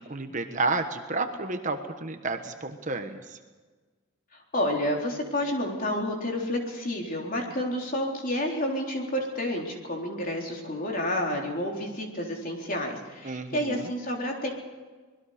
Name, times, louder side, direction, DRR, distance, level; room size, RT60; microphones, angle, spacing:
voice 1, 0.0-3.4 13.2-13.9, right 3 dB, 35° right, 6 dB, 1.2 m, -31 dB
voice 2, 4.5-14.5, left 1 dB, 40° left, 0 dB, 3.9 m, -30 dB
25.5 x 20.5 x 5.1 m, 1.4 s
head